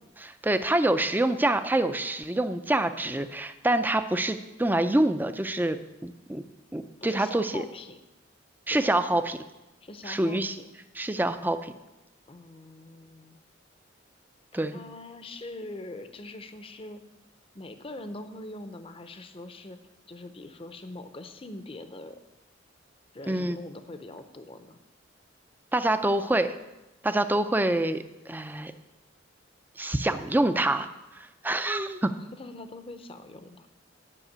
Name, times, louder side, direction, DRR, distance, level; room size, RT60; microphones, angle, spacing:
voice 1, 0.2-6.4 6.7-7.6 8.7-9.4 10.1-10.6 11.0-11.7 14.5-14.8 23.3-23.6 25.7-26.5 27.0-28.7 29.8-30.9 31.1-32.1, right 1 dB, 10° right, 9 dB, 0.5 m, -26 dB
voice 2, 7.0-8.0 8.7-8.9 9.8-10.7 12.3-13.4 14.5-17.0 17.5-19.8 20.1-22.2 23.1-24.8 32.3-33.7, left 2 dB, 30° left, 9 dB, 0.7 m, -42 dB
9.9 x 5.9 x 8.2 m, 1.0 s
head